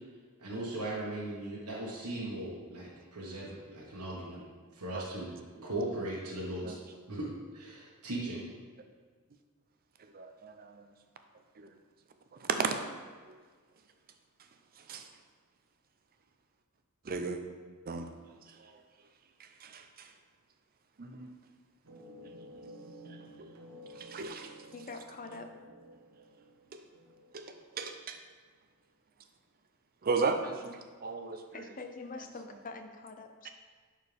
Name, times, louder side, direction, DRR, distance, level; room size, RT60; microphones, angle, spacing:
voice 1, 0.4-4.4 4.7-5.3 5.6-6.7 7.1-8.5, right 1 dB, 90° right, -5 dB, 1.4 m, -38 dB
voice 2, 10.1-10.8 11.6-11.7 12.4-12.8 13.3-13.4 14.9-15.1 17.1-17.4 17.9-18.1 18.6-18.8 19.6-20.1 21.0-21.4 23.1-23.5 24.0-24.5 27.3-27.5 27.8-28.2 30.0-31.6 33.4-33.5, right 4 dB, 40° right, 7 dB, 0.5 m, -35 dB
sound 1, 21.8-28.0, equal, 70° right, 1.0 m, -52 dB
voice 3, 24.7-25.5 31.5-33.5, left 3 dB, 35° left, 6 dB, 0.6 m, -44 dB
10.5 x 4.5 x 3.4 m, 1.5 s
head